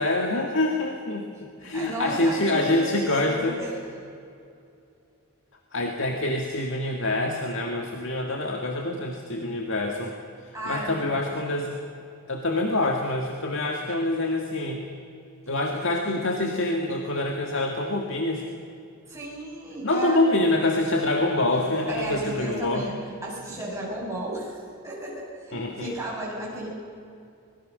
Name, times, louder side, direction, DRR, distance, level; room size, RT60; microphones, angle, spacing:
voice 1, 0.0-3.6 5.7-10.1 10.4-11.8 12.3-14.8 15.5-18.5 19.8-22.9 25.5-25.9, left 2 dB, 60° left, 2 dB, 1.9 m, -26 dB
voice 2, 1.6-2.9 3.2-3.7 10.5-11.2 19.1-20.2 21.9-22.9 23.2-26.7, right 1 dB, 15° right, -5 dB, 7.8 m, -34 dB
25.0 x 21.5 x 6.5 m, 2.6 s
head